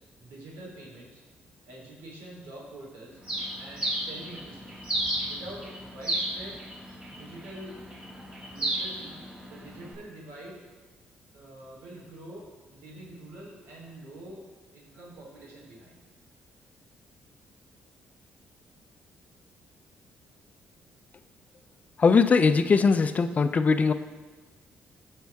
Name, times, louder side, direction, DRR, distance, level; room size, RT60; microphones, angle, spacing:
voice 1, 0.2-1.2 1.6-3.2 3.5-4.8 5.2-6.6 7.1-7.8 8.5-9.2 9.5-10.6 11.3-12.4 12.7-14.5 14.7-16.0, right 1 dB, 85° right, -3 dB, 3.5 m, -45 dB
Bird, 3.2-9.9, right 1 dB, 30° right, 3.4 m, -34 dB
voice 2, 22.0-23.9, left 5 dB, 40° left, 10 dB, 0.6 m, -20 dB
16.0 x 5.7 x 3.5 m, 1.3 s
cardioid pair, 80°, 4 cm